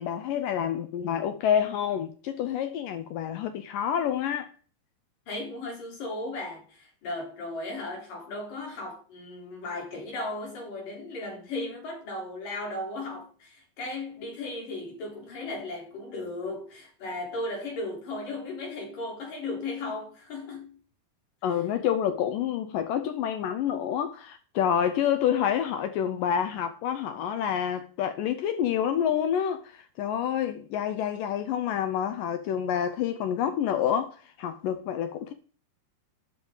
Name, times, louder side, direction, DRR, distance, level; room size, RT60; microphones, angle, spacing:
voice 1, 0.0-4.5 21.4-35.3, left 9 dB, 80° left, 1.9 m, -28 dB
voice 2, 5.3-20.8, left 2 dB, 55° left, 5.3 m, -36 dB
12.5 x 10.0 x 3.9 m
omnidirectional pair, 4.7 m